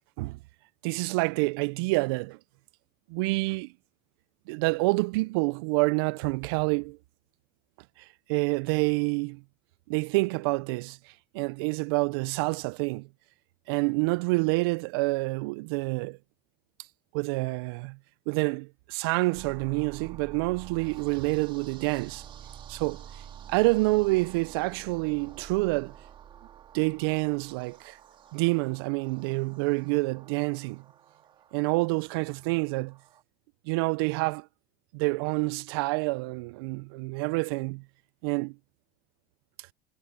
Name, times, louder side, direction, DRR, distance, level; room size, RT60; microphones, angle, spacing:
voice 1, 0.8-2.4 3.1-3.7 4.5-7.0 8.3-9.4 9.9-11.0 11.3-13.1 13.7-16.2 17.1-18.0 18.3-22.2 22.7-23.0 23.5-26.0 26.7-28.0 28.3-30.8 31.5-33.0 33.7-34.5 34.9-37.8 38.2-38.6, right 26 dB, 80° right, 0.5 m, -27 dB
sound 1, 19.3-33.2, right 9 dB, 45° right, 2.8 m, -49 dB
supercardioid pair, 100°, 12 cm